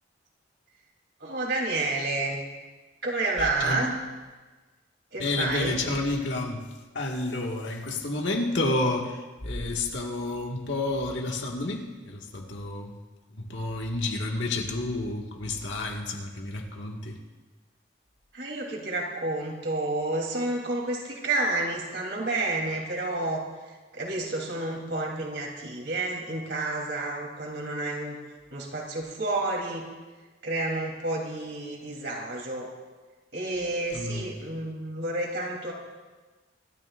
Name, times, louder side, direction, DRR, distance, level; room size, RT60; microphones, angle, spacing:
voice 1, 1.2-2.4 3.0-3.9 5.1-5.8 18.3-28.2 28.5-29.8 30.4-32.7 33.3-35.7, right 2 dB, 65° right, -1 dB, 3.2 m, -30 dB
voice 2, 5.2-6.6 7.0-9.2 9.4-12.9 13.4-17.2 33.9-34.2, left 2 dB, 75° left, 1 dB, 1.8 m, -30 dB
25.5 x 13.0 x 2.5 m, 1.3 s
head